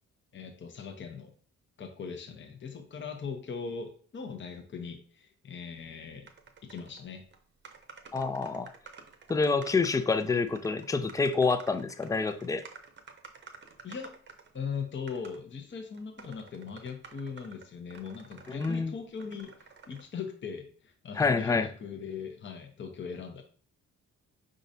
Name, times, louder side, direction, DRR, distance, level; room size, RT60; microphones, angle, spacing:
voice 1, 0.3-1.3 1.8-6.3 6.6-7.2 13.8-14.1 14.5-23.4, left 6 dB, 40° left, 0.8 m, -40 dB
sound 1, 6.3-7.0 7.3-7.4 7.6-14.6 15.1-15.4 15.9-18.8 19.2-20.0, right 5 dB, 35° right, 0.8 m, -51 dB
voice 2, 8.1-8.7 9.3-12.6 18.5-18.9 21.2-21.7, left 4 dB, 10° left, 0.4 m, -27 dB
5.0 x 3.8 x 2.7 m
cardioid pair, 90°, 30 cm